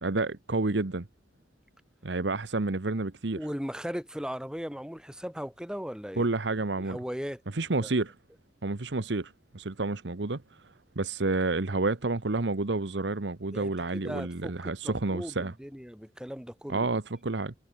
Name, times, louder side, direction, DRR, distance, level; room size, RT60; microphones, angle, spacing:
voice 1, 0.0-1.1 2.0-3.4 6.2-7.0 7.5-8.1 8.6-10.4 11.0-15.5 16.7-17.5, right 3 dB, 70° right, 1.1 m, -29 dB
voice 2, 3.3-6.2 6.8-7.4 7.8-7.9 13.5-16.9, equal, 5° right, 3.6 m, -38 dB
head